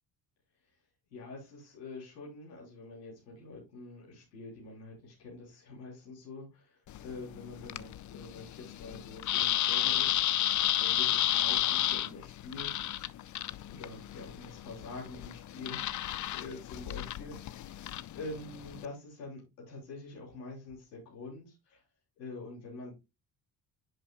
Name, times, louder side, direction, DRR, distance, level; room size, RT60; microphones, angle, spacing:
voice 1, 1.1-12.8 13.7-21.8 22.2-22.9, left 3 dB, 90° left, -3 dB, 3.4 m, -46 dB
sound 1, 6.9-18.9, left 13 dB, 40° left, 0.5 m, -32 dB
10.0 x 5.9 x 2.3 m, 0.24 s
hypercardioid pair, 55°, 47 cm